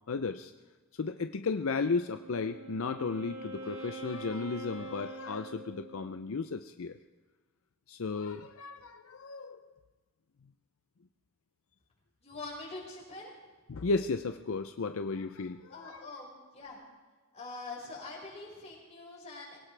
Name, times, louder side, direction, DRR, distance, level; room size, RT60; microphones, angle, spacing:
voice 1, 0.1-0.5 0.9-7.0 7.9-9.7 13.7-16.1, left 4 dB, 70° left, 8 dB, 0.5 m, -34 dB
Wind instrument woodwind instrument, 1.9-6.3, right 2 dB, 60° right, 2.8 m, -45 dB
voice 2, 12.2-13.3 15.7-16.3 16.5-16.8 17.3-19.6, left 3 dB, 30° left, -4 dB, 5.3 m, -44 dB
22.5 x 17.5 x 3.4 m, 1.3 s
head